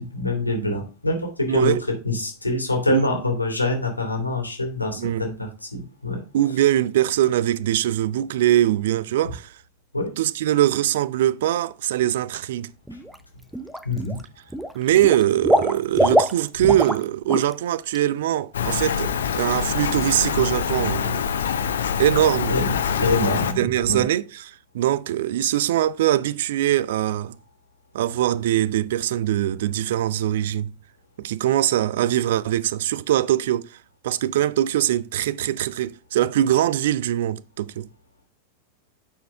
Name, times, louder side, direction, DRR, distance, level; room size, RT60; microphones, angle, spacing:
voice 1, 0.0-6.2 9.9-10.1 13.8-14.2 22.5-22.7 23.0-24.1, left 2 dB, 85° left, 2.3 m, -25 dB
voice 2, 1.4-1.8 2.9-3.2 4.9-5.3 6.3-9.5 10.2-12.7 14.7-21.3 22.0-22.6 23.6-27.4 27.9-30.7 31.2-33.8 34.0-37.9, right 12 dB, 55° right, 0.4 m, -22 dB
Water / Liquid, 12.9-13.2 13.5-14.2 14.5-17.0 17.3-17.5 17.9-18.0, equal, 5° right, 0.6 m, -23 dB
Rain, 18.5-23.5, left 7 dB, 65° left, 0.8 m, -25 dB
9.2 x 4.4 x 3.4 m
figure-of-eight pair, 90°, 0 cm